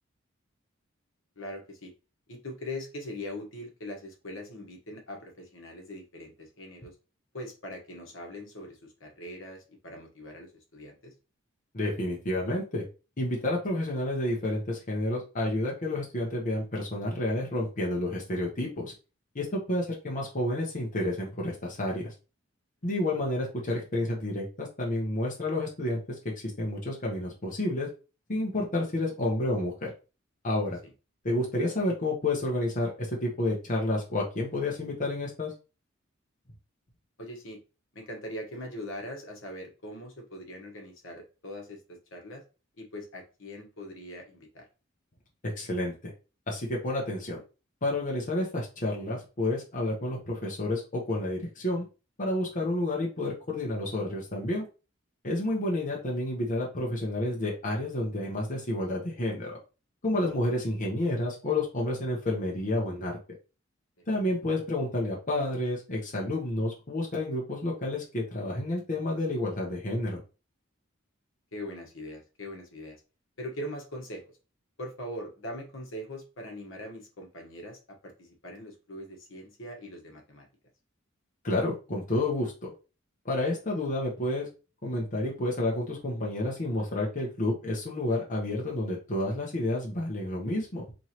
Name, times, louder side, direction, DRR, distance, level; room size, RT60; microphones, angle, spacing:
voice 1, 1.4-1.9 2.3-6.9 7.3-11.1 37.2-37.6 37.9-42.4 42.8-44.6 71.5-73.0 73.4-74.2 74.8-80.5, left 1 dB, 70° left, 2 dB, 1.2 m, -41 dB
voice 2, 11.7-12.8 13.2-18.9 19.3-22.1 22.8-27.9 28.3-29.9 30.4-30.8 31.2-35.5 45.6-46.1 46.5-47.4 47.8-51.8 52.2-54.7 55.2-59.6 60.0-63.2 64.1-70.2 81.4-82.7 83.2-84.5 84.8-90.9, left 1 dB, 40° left, -2 dB, 0.9 m, -30 dB
4.4 x 3.1 x 2.9 m, 0.32 s
head